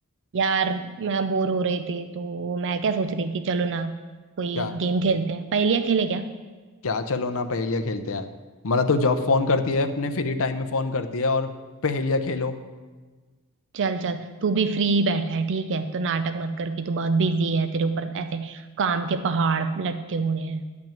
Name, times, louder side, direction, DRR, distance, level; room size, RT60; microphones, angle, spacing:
voice 1, 0.3-4.0 4.4-6.3 13.7-20.6, right 4 dB, 55° right, 10 dB, 0.5 m, -25 dB
voice 2, 6.8-8.3 8.6-11.5 11.8-12.6, left 3 dB, 65° left, 8 dB, 0.7 m, -24 dB
10.5 x 6.0 x 8.8 m, 1.4 s
head